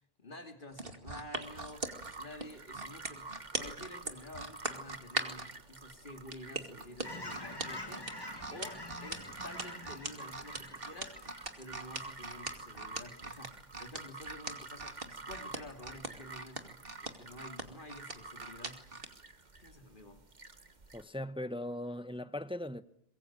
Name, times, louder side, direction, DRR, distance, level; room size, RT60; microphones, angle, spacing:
voice 1, 0.2-3.3 3.5-8.1 8.5-11.2 11.6-18.8 19.6-20.2, left 1 dB, 55° left, 3.2 m, -50 dB
sound 1, 0.7-5.5 6.3-19.1 19.6-19.7, right 3 dB, 65° right, 2.6 m, -40 dB
sound 2, 1.4-21.0, right 3 dB, 45° right, 1.8 m, -50 dB
Fowl / Chirp tweet, 7.0-12.9 13.3-13.5, left 1 dB, 25° left, 2.3 m, -47 dB
voice 2, 20.9-22.8, left 1 dB, 5° right, 0.9 m, -39 dB
24.0 x 23.0 x 8.9 m
omnidirectional pair, 1.0 m